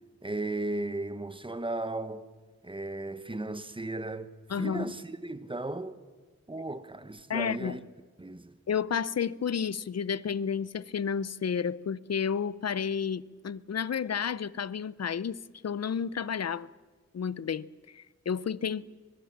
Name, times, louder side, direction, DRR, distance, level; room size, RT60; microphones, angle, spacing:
voice 1, 0.2-2.3 2.6-6.0 6.5-7.8 8.2-8.6, right 2 dB, 15° right, 1.2 m, -36 dB
voice 2, 4.5-4.9 7.3-7.8 8.7-15.4 15.6-16.7 17.1-18.9, left 7 dB, 60° left, 0.6 m, -31 dB
23.5 x 20.5 x 7.3 m
wide cardioid pair, 75°, 29 cm